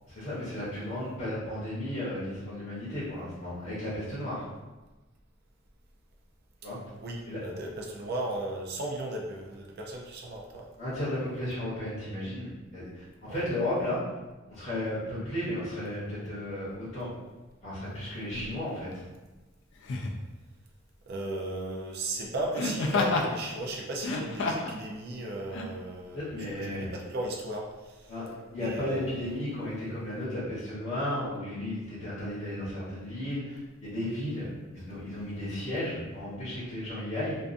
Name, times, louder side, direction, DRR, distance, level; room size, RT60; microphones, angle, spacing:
voice 1, 0.1-4.4 6.6-6.8 7.3-7.4 10.8-14.0 14.5-17.1 17.6-19.0 26.1-26.9 28.1-37.4, left 1 dB, 30° left, -10 dB, 0.8 m, -34 dB
voice 2, 7.0-10.7 13.3-13.4 21.1-28.1 28.6-29.3, right 1 dB, 50° right, -1 dB, 0.4 m, -36 dB
Laughter, 18.3-18.5 19.8-20.2 22.5-23.3 23.9-24.8 25.5-25.7, left 3 dB, 60° left, 0.3 m, -29 dB
2.5 x 2.3 x 2.4 m, 1.2 s
head